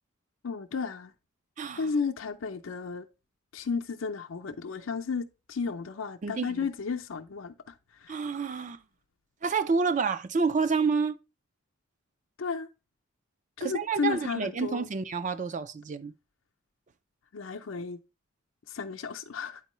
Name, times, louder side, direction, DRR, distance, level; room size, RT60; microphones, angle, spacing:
voice 1, 0.4-1.1 1.8-3.1 3.5-8.2 12.4-12.7 13.6-14.9 17.3-18.0 18.7-19.6, left 5 dB, 85° left, 0.6 m, -33 dB
voice 2, 1.6-1.9 6.2-6.5 8.1-8.8 9.4-11.2 13.6-16.1, right 5 dB, 40° right, 0.4 m, -29 dB
9.2 x 4.5 x 3.0 m
head